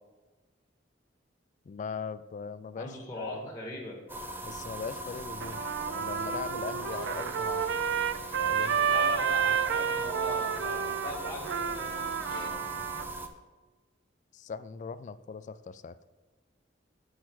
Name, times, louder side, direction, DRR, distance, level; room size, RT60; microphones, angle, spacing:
voice 1, 1.6-3.5 4.4-5.7 5.9-7.7 8.4-8.8 14.3-16.0, left 5 dB, 40° left, 13 dB, 0.3 m, -40 dB
voice 2, 2.8-4.0 8.9-12.6, left 1 dB, 15° left, -2 dB, 1.8 m, -40 dB
sound 1, 4.1-13.3, right 2 dB, 10° right, 0.6 m, -40 dB
Trumpet, 5.4-13.1, right 7 dB, 70° right, 0.3 m, -30 dB
sound 2, 6.9-12.5, left 4 dB, 80° left, 1.0 m, -49 dB
6.3 x 5.6 x 6.2 m, 1.2 s
head